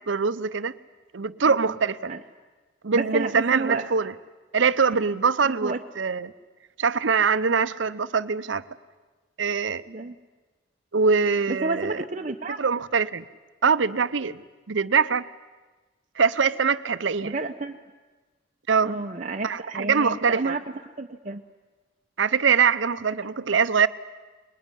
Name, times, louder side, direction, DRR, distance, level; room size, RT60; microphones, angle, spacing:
voice 1, 0.1-0.7 1.1-2.1 2.8-4.1 4.5-6.3 6.8-8.6 9.4-9.8 10.9-12.0 12.6-13.3 13.6-14.4 14.7-15.2 16.2-17.4 18.7-19.0 19.4-20.6 22.2-23.9, right 5 dB, 70° right, 14 dB, 0.7 m, -23 dB
voice 2, 2.9-3.9 5.4-5.8 9.9-10.1 11.5-12.6 17.2-17.8 18.8-20.6 21.0-21.4, right 3 dB, 40° right, 4 dB, 0.7 m, -30 dB
22.0 x 21.0 x 9.9 m, 1.3 s
head